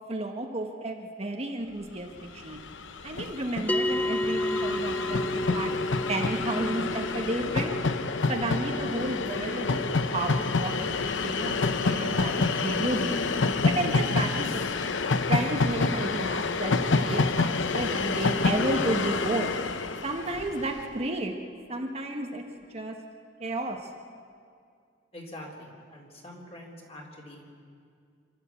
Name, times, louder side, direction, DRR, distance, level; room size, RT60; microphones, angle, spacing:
voice 1, 0.1-2.1 2.3-2.6 3.0-5.7 6.1-7.8 8.3-13.2 13.6-14.8 15.3-19.5 20.0-21.3 21.7-22.4 22.7-22.9 23.4-23.8, right 2 dB, 35° right, 2 dB, 1.4 m, -32 dB
Train, 2.2-2.3 2.4-20.8, left 3 dB, 70° left, 0.8 m, -28 dB
sound 1, 3.7-14.2, left 1 dB, 10° left, 0.6 m, -34 dB
voice 2, 25.1-27.4, left 1 dB, 35° left, 0 dB, 3.8 m, -45 dB
27.0 x 13.0 x 8.3 m, 2.3 s
head